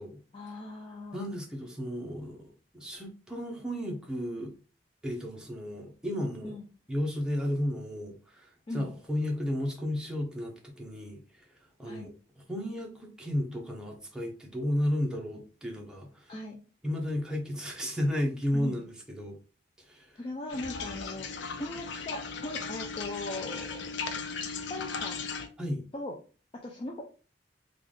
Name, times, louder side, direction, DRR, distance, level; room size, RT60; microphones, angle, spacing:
voice 1, 0.3-1.2 6.4-6.6 8.7-8.9 11.9-12.1 16.3-16.6 18.5-18.8 20.2-21.3 21.6-23.9 24.4-25.2 25.9-26.2 26.5-27.0, left 2 dB, 30° left, 0.4 m, -39 dB
voice 2, 1.1-4.5 5.0-6.5 6.9-11.4 11.8-12.1 12.5-16.3 16.8-19.4 19.8-20.2 25.6-25.8, left 1 dB, 5° right, 0.8 m, -33 dB
sound 1, 20.5-25.5, left 5 dB, 85° left, 0.5 m, -37 dB
3.3 x 2.4 x 3.7 m
head